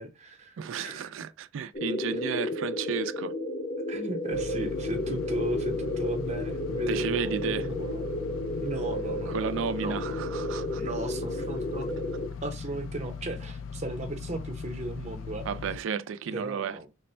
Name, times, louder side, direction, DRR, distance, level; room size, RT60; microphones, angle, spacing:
voice 1, 0.0-1.1 3.9-8.0 8.6-9.5 9.8-10.3 10.8-11.9 12.4-15.5 16.3-16.9, right 2 dB, 35° right, 0.7 m, -36 dB
voice 2, 0.6-3.3 6.9-7.7 9.3-10.8 15.5-16.8, right 7 dB, 75° right, 0.3 m, -33 dB
sound 1, 1.7-12.3, left 1 dB, 35° left, 0.6 m, -32 dB
sound 2, 4.3-15.8, left 5 dB, 80° left, 0.3 m, -39 dB
3.3 x 2.1 x 4.3 m
head